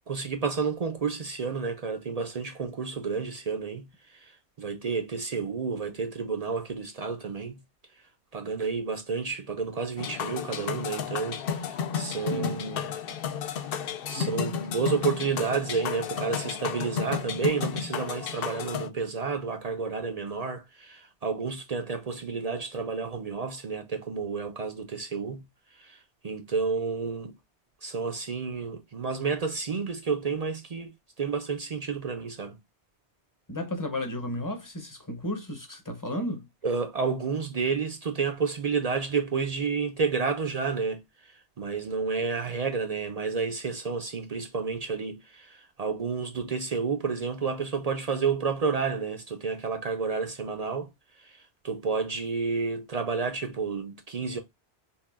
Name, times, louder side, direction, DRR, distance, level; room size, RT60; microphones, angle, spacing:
voice 1, 0.1-7.6 8.3-12.9 13.6-13.7 14.1-25.4 25.7-27.4 27.8-32.6 36.6-50.9 51.2-54.4, right 5 dB, 50° right, 0.5 m, -30 dB
sound 1, 10.0-18.9, left 7 dB, 65° left, 0.7 m, -32 dB
voice 2, 12.3-12.6 14.1-14.4 33.5-36.5, left 1 dB, 20° left, 0.7 m, -34 dB
5.5 x 2.3 x 2.3 m
omnidirectional pair, 1.2 m